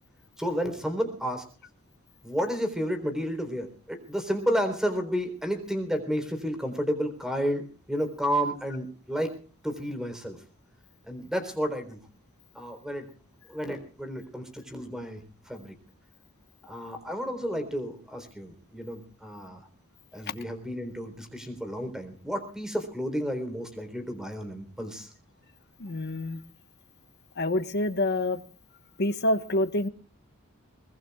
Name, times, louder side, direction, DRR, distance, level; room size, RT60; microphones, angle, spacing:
voice 1, 0.4-1.5 2.2-7.6 7.9-9.4 9.6-10.4 11.1-12.0 12.5-13.1 13.5-15.2 15.5-15.7 16.6-19.6 20.1-25.1, equal, 5° right, 7 dB, 3.9 m, -31 dB
voice 2, 25.8-26.4 27.4-28.4 29.0-29.9, left 1 dB, 50° left, 8 dB, 1.3 m, -27 dB
23.0 x 20.5 x 2.4 m, 0.39 s
head